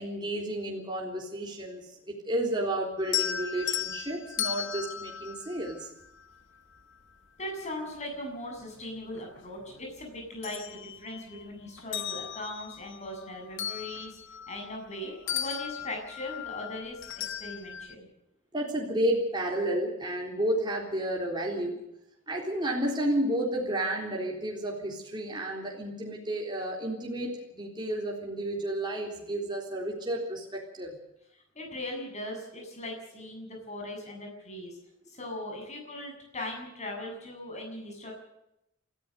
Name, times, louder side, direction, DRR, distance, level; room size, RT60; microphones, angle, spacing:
voice 1, 0.0-5.9 18.5-21.8 22.3-31.0, right 1 dB, 20° right, -1 dB, 3.8 m, -31 dB
sound 1, 3.0-6.3 8.0-8.1 8.6-9.8 10.2-11.4 11.8-15.0 15.3-17.9, left 10 dB, 60° left, 1.0 m, -36 dB
voice 2, 7.4-14.1 14.5-17.0 17.4-18.1 31.5-34.8 35.1-38.1, left 1 dB, 30° left, 2 dB, 7.8 m, -39 dB
28.0 x 14.5 x 6.7 m, 0.85 s
head